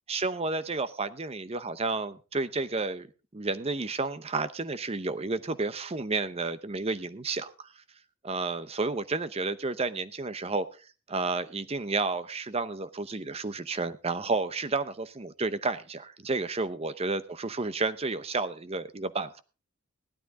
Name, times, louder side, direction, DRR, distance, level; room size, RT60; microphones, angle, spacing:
voice 1, 0.1-3.1 3.3-7.7 8.2-10.7 11.1-19.4, right 3 dB, 30° right, 14 dB, 0.7 m, -31 dB
16.5 x 12.5 x 3.6 m, 0.34 s
head